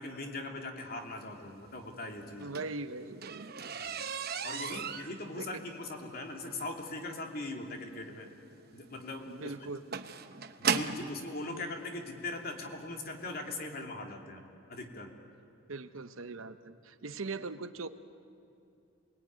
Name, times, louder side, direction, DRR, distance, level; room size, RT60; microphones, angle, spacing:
voice 1, 0.0-2.5 3.7-4.0 4.4-8.3 8.7-9.6 10.6-14.4 14.7-15.1, left 2 dB, 45° left, 2 dB, 2.8 m, -40 dB
sound 1, 2.3-11.2 12.1-12.2 12.7-12.9 13.2-13.3 13.6-13.7, right 6 dB, 50° right, 1.0 m, -37 dB
voice 2, 2.4-3.5 4.7-5.0 5.3-5.6 9.3-10.1 15.7-17.9, right 3 dB, 75° right, 10 dB, 1.0 m, -41 dB
28.5 x 21.0 x 9.4 m, 2.6 s
head